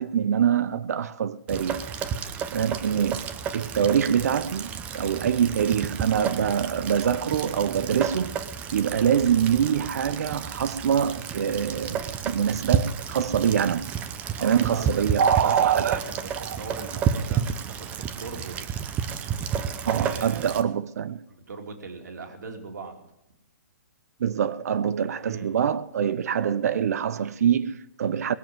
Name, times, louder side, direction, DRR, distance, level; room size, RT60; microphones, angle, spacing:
voice 1, 0.0-1.8 2.5-3.3 3.5-4.7 4.9-8.3 8.7-13.9 14.4-16.0 16.4-16.6 19.8-21.2 24.2-28.3, right 8 dB, 60° right, 0.6 m, -24 dB
Rain, 1.5-20.6, right 7 dB, 15° right, 0.7 m, -31 dB
voice 2, 14.4-18.6 19.9-20.5 21.3-23.1 25.2-25.5, right 4 dB, 85° right, 2.8 m, -40 dB
20.0 x 7.1 x 7.6 m
hypercardioid pair, 165°, 9 cm